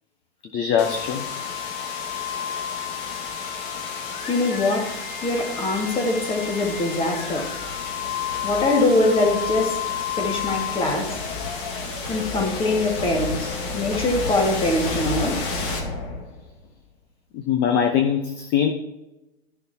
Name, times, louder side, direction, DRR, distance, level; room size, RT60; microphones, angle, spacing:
voice 1, 0.5-1.3 17.3-18.7, left 8 dB, 35° left, 6 dB, 0.9 m, -22 dB
sound 1, 0.8-16.6, left 5 dB, 50° left, 1.9 m, -30 dB
voice 2, 4.3-7.5 8.4-9.8 10.1-11.2 12.1-15.4, left 2 dB, 15° left, 1 dB, 2.0 m, -23 dB
13.5 x 6.8 x 2.8 m, 0.97 s
hypercardioid pair, 115°, 32 cm